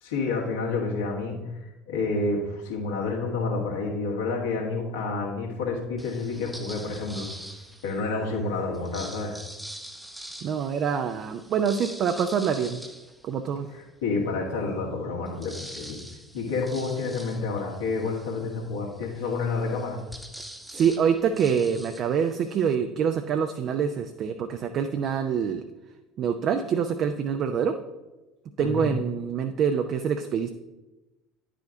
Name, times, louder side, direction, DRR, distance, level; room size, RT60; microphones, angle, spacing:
voice 1, 0.0-7.3 7.8-9.4 13.7-16.0 16.3-20.0 28.6-28.9, left 3 dB, 70° left, -1 dB, 1.7 m, -29 dB
sound 1, 6.0-8.1 8.7-13.9 14.4-14.5 14.7-22.7, right 1 dB, 5° right, 0.8 m, -44 dB
voice 2, 10.4-12.8 13.2-13.7 20.7-25.6 26.2-27.7 28.6-30.5, right 7 dB, 45° right, 7 dB, 0.5 m, -25 dB
10.5 x 5.0 x 3.8 m, 1.1 s
figure-of-eight pair, 65°, 0 cm